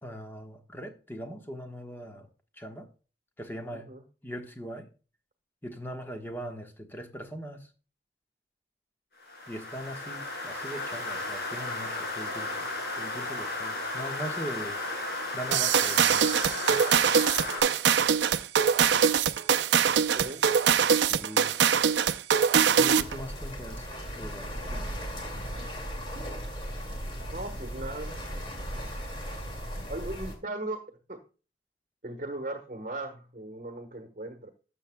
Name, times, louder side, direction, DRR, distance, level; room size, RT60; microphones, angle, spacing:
voice 1, 0.0-2.3 2.5-2.9 3.4-3.9 4.2-4.9 5.6-7.7 9.5-14.8 15.3-16.8 21.0-21.6 22.7-23.9 24.1-25.0, equal, 10° left, 1.2 m, -41 dB
sound 1, 9.2-17.6, left 2 dB, 60° left, 4.7 m, -34 dB
sound 2, 15.5-23.2, right 7 dB, 85° right, 0.5 m, -23 dB
sound 3, 23.0-30.3, equal, 30° left, 2.2 m, -37 dB
voice 2, 27.3-28.2 28.8-28.9 29.9-30.8 31.1-31.2 32.0-34.5, right 2 dB, 45° right, 1.2 m, -37 dB
13.0 x 7.2 x 2.2 m
head